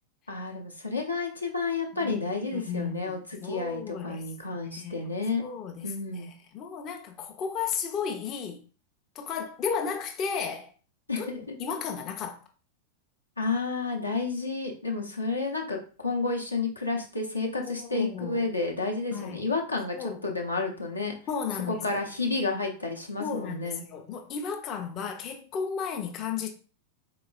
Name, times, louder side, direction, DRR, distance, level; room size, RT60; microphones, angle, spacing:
voice 1, 0.3-5.5 5.8-6.3 11.1-11.5 13.4-21.1 21.7-23.8, left 3 dB, 85° left, 0.6 m, -31 dB
voice 2, 1.9-4.3 4.7-8.6 9.2-10.7 11.2-12.4 17.6-18.5 19.1-19.5 19.9-20.4 21.3-22.0 23.2-26.5, left 6 dB, 35° left, 0.4 m, -34 dB
4.0 x 2.9 x 2.2 m
figure-of-eight pair, 90°, 0 cm